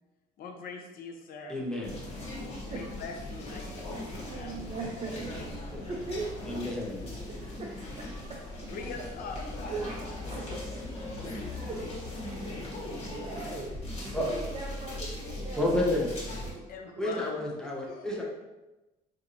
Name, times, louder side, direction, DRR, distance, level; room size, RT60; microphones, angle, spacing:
voice 1, 0.4-1.6 2.7-4.7 8.7-9.7 16.5-17.3 17.9-18.2, left 4 dB, 60° left, 3 dB, 0.6 m, -42 dB
voice 2, 1.5-1.9 5.7-5.9 6.4-7.1 14.1-14.3 15.6-16.1 17.0-18.2, left 1 dB, 5° left, -3 dB, 0.8 m, -30 dB
sound 1, 1.8-16.5, left 1 dB, 35° left, 1.4 m, -39 dB
voice 3, 3.4-5.3 5.7-6.3 7.3-8.7 9.7-10.8 11.4-12.6 13.1-13.8 14.3-15.7 16.4-16.7 17.9-18.2, right 3 dB, 35° right, -2 dB, 0.5 m, -41 dB
4.5 x 2.7 x 2.6 m, 1.1 s
cardioid pair, 110°, 17 cm